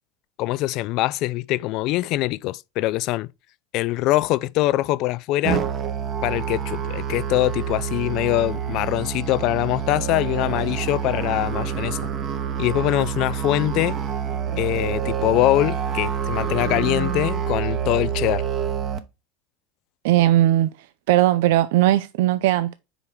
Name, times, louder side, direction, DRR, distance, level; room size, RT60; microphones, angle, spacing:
voice 1, 0.4-3.3 3.7-5.6 6.2-12.1 12.6-14.0 14.6-18.4, left 17 dB, 50° left, 0.3 m, -23 dB
Musical instrument, 5.4-19.0, right 8 dB, 30° right, 0.8 m, -27 dB
voice 2, 20.0-20.7 21.1-22.7, right 14 dB, 75° right, 0.4 m, -18 dB
5.0 x 4.6 x 5.7 m
supercardioid pair, 145°, 0 cm